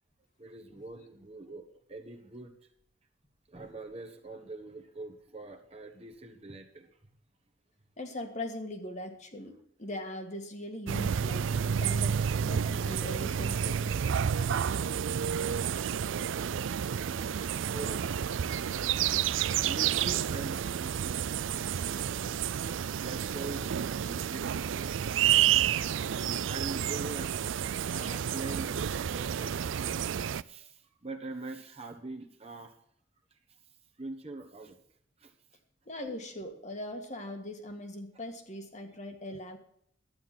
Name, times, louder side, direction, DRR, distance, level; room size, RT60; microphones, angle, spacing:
voice 1, 0.4-2.5 3.5-6.9 14.2-14.3 14.6-14.7 15.4-16.1 17.2-17.3 17.6-18.1 18.7-21.1 21.9-22.0 23.0-24.9 26.4-27.3 28.1-32.7 34.0-34.8 35.2-35.3, right 2 dB, 30° right, 4 dB, 1.3 m, -44 dB
voice 2, 8.0-11.5 11.8-13.9 27.9-28.3 35.9-39.6, left 1 dB, 35° left, 5 dB, 1.7 m, -40 dB
sound 1, 10.9-30.4, right 8 dB, 70° right, 0.4 m, -30 dB
12.0 x 9.4 x 6.0 m, 0.69 s
head